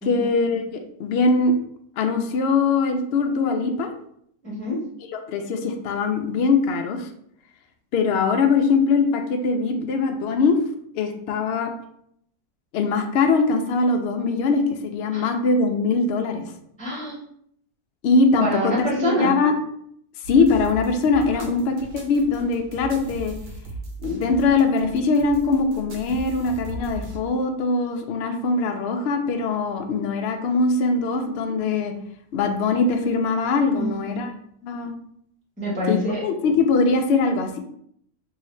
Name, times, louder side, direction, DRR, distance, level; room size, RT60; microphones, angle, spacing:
voice 1, 0.0-1.5 2.0-3.9 5.1-7.1 7.9-10.6 10.9-11.7 12.7-16.4 18.0-19.5 20.3-23.3 24.0-31.9 32.3-34.3 34.6-34.9 35.9-37.6, left 4 dB, 85° left, 5 dB, 0.5 m, -22 dB
voice 2, 4.4-4.8 15.1-15.3 16.8-17.2 18.4-19.3 33.7-34.2 35.6-36.2, left 1 dB, 10° left, -5 dB, 0.5 m, -26 dB
sound 1, 20.2-27.2, right 2 dB, 65° right, 1.0 m, -37 dB
3.2 x 2.7 x 3.1 m, 0.69 s
omnidirectional pair, 1.6 m